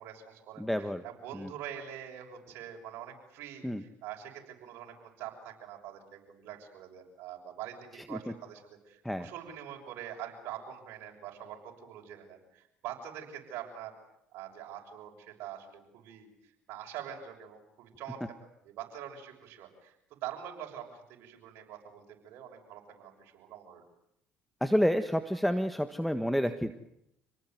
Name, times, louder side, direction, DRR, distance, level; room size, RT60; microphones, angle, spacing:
voice 1, 0.0-0.7 1.0-14.0 14.3-18.2 18.6-23.8, right 10 dB, 70° right, 1 dB, 6.6 m, -44 dB
voice 2, 0.6-1.0 1.3-1.5 3.6-3.8 8.1-8.2 9.0-9.3 24.6-26.7, equal, ahead, 10 dB, 1.5 m, -29 dB
27.5 x 19.0 x 9.4 m, 0.79 s
supercardioid pair, 80°, 4 cm